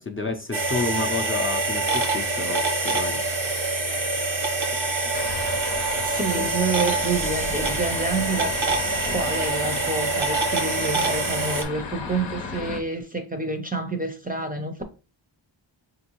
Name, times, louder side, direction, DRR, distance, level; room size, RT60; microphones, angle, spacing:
voice 1, 0.0-3.2 6.3-6.5, left 4 dB, 30° left, 0.5 m, -30 dB
sound 1, 0.5-11.6, right 3 dB, 90° right, 1.2 m, -25 dB
sound 2, 5.1-12.8, left 4 dB, 70° left, 0.7 m, -36 dB
voice 2, 6.0-8.6 9.1-14.8, right 3 dB, 20° right, 0.5 m, -28 dB
5.2 x 2.6 x 2.9 m
wide cardioid pair, 125°, 46 cm